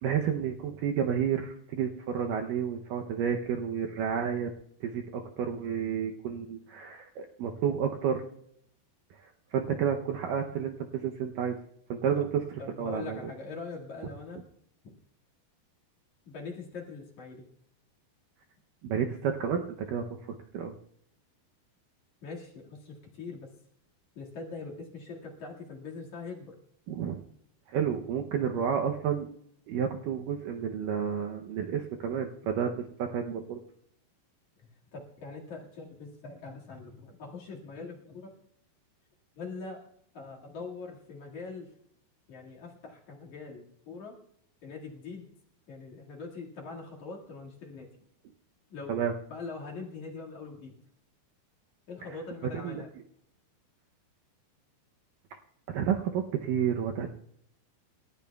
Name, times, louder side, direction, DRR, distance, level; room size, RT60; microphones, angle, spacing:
voice 1, 0.0-4.5 4.8-8.2 9.5-11.6 11.9-12.3 12.8-13.3 18.8-19.6 19.9-20.2 20.5-20.8 26.9-27.2 27.7-29.3 29.7-33.6 48.9-49.1 52.6-52.8 55.7-57.1, right 8 dB, 80° right, 3 dB, 1.9 m, -30 dB
voice 2, 12.6-14.4 14.8-14.9 16.3-17.5 22.2-23.5 24.1-26.5 34.6-38.3 39.4-39.8 40.1-41.7 42.3-44.2 44.6-45.3 45.7-47.9 48.7-49.0 49.3-50.8 51.9-52.9, left 4 dB, 50° left, -1 dB, 3.0 m, -42 dB
28.5 x 14.0 x 2.3 m, 0.70 s
omnidirectional pair, 4.8 m